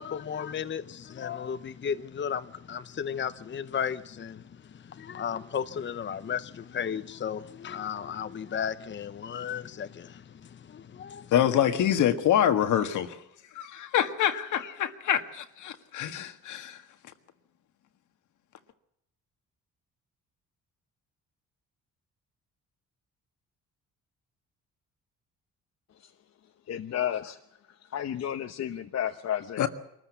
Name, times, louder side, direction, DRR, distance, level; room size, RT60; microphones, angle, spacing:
voice 1, 0.0-11.3, left 7 dB, 40° left, 0.9 m, -34 dB
voice 2, 11.3-13.2 13.5-16.8 29.6-29.7, left 10 dB, 75° left, 1.7 m, -26 dB
voice 3, 26.7-27.4 27.8-29.7, left 10 dB, 60° left, 1.0 m, -32 dB
23.5 x 14.0 x 8.3 m
cardioid pair, 90°, 30 cm